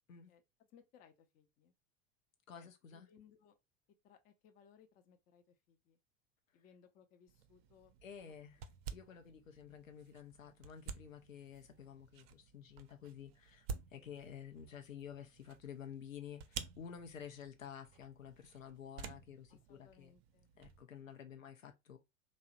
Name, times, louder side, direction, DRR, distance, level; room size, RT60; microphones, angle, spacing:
voice 1, 0.3-1.7 2.5-3.6 4.0-6.0 6.5-8.3 9.1-9.3 13.9-14.1 19.5-20.5, left 7 dB, 25° left, 0.3 m, -66 dB
voice 2, 2.5-3.1 8.0-8.6 8.9-13.7 13.9-20.1 20.6-22.0, left 8 dB, 85° left, 0.5 m, -51 dB
sound 1, 7.3-20.8, right 6 dB, 50° right, 0.4 m, -52 dB
2.7 x 2.1 x 2.4 m
figure-of-eight pair, 75°, 39 cm